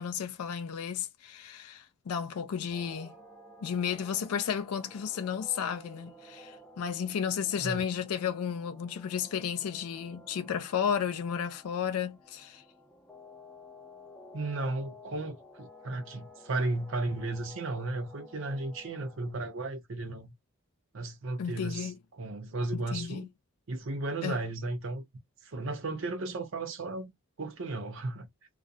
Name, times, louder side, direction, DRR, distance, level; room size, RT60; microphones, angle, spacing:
voice 1, 0.0-3.1 3.6-12.6 21.4-22.0 22.7-23.3 24.2-24.4, left 7 dB, 80° left, 0.4 m, -33 dB
sound 1, 2.7-19.3, left 1 dB, 5° left, 0.4 m, -53 dB
voice 2, 14.3-20.3 20.9-23.3 23.7-25.0 25.4-27.1 27.4-28.3, right 2 dB, 60° right, 0.5 m, -34 dB
2.4 x 2.0 x 2.6 m
head